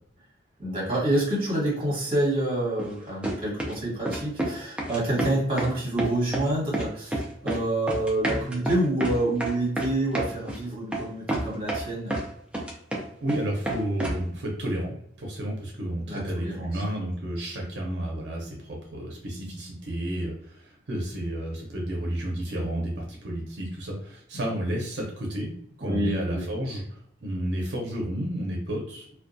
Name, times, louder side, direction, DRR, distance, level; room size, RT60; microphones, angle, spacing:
voice 1, 0.6-12.2 16.0-16.8 25.8-26.5, right 1 dB, 30° right, -5 dB, 1.1 m, -27 dB
sound 1, 2.8-2.9 3.2-3.8 4.1-4.5 4.8-5.7 6.0-6.5 6.7-7.6 7.9-10.6 10.9-11.0 11.3-12.2 12.5-13.4 13.6-14.2, right 1 dB, 5° right, 0.4 m, -29 dB
voice 2, 13.2-25.5 25.8-26.8 27.2-29.1, right 1 dB, 80° right, -1 dB, 0.6 m, -31 dB
2.2 x 2.2 x 2.5 m, 0.66 s
head